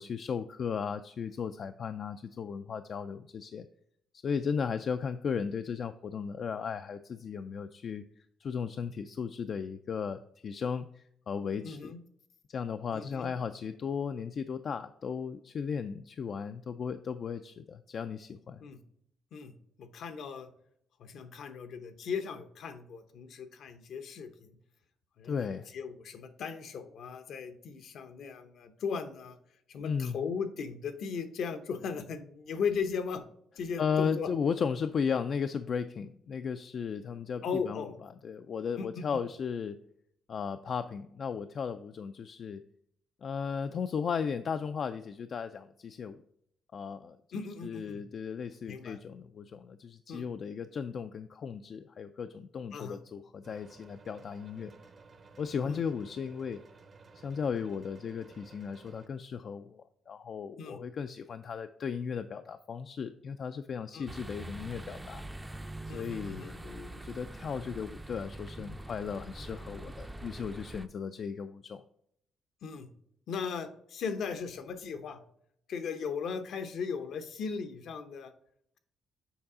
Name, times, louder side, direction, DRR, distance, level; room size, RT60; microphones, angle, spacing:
voice 1, 0.0-3.7 4.2-8.0 8.4-12.0 12.5-18.6 25.2-25.7 29.8-30.2 33.8-39.8 40.3-42.6 43.2-46.2 46.7-54.7 55.4-56.6 57.2-65.2 65.9-71.8, left 6 dB, 55° left, 9 dB, 0.3 m, -36 dB
voice 2, 11.6-12.0 12.9-13.3 18.6-18.8 19.3-20.5 21.0-24.6 25.2-29.4 29.7-33.2 33.6-34.3 37.4-38.0 38.8-39.2 47.3-48.0 48.7-49.0 50.1-50.2 52.7-53.0 55.6-55.8 60.6-60.8 63.9-64.1 65.9-66.5 72.6-72.9 73.3-75.2 75.7-78.3, left 6 dB, 70° left, 9 dB, 0.7 m, -37 dB
sound 1, 53.4-59.1, right 4 dB, 40° right, 0.7 m, -55 dB
sound 2, 64.1-70.9, right 1 dB, 15° right, 0.4 m, -44 dB
7.1 x 4.7 x 3.7 m, 0.71 s
cardioid pair, 90°, 0 cm